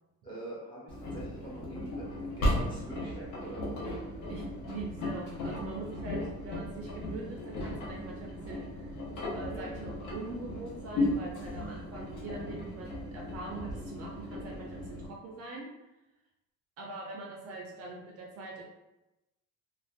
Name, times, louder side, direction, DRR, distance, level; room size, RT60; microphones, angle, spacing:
voice 1, 0.2-3.7 9.5-9.7, right 1 dB, 15° left, -6 dB, 0.6 m, -45 dB
Engine, 0.9-15.1, left 1 dB, 60° left, 0.8 m, -36 dB
voice 2, 4.3-8.9 9.3-15.7 16.8-18.6, right 2 dB, 45° right, -1 dB, 0.4 m, -43 dB
2.5 x 2.1 x 2.3 m, 0.98 s
cardioid pair, 165°, 33 cm